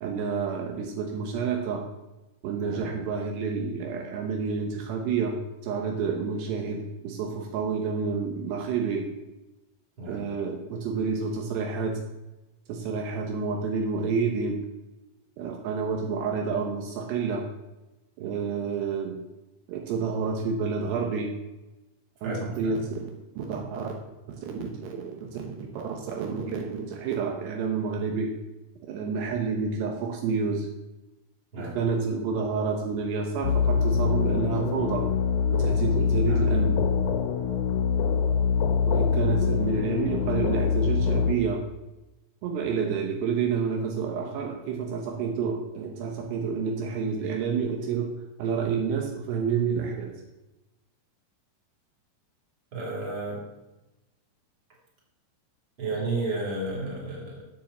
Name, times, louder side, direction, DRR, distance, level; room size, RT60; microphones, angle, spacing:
voice 1, 0.0-1.8 2.4-5.4 5.6-9.1 10.1-12.0 12.7-14.6 15.4-17.4 18.2-19.2 19.7-21.3 22.2-23.1 23.4-23.9 24.3-28.3 28.8-30.7 31.6-35.1 35.5-36.8 38.9-41.6 42.4-48.1 48.4-50.2, right 5 dB, 80° right, 2 dB, 3.1 m, -29 dB
voice 2, 22.2-22.7 31.5-31.8 36.3-36.4 52.7-53.4 55.8-57.4, right 2 dB, 30° right, -4 dB, 4.0 m, -32 dB
sound 1, 33.4-41.3, left 6 dB, 70° left, 2.0 m, -24 dB
9.1 x 7.4 x 7.3 m, 1.0 s
omnidirectional pair, 4.9 m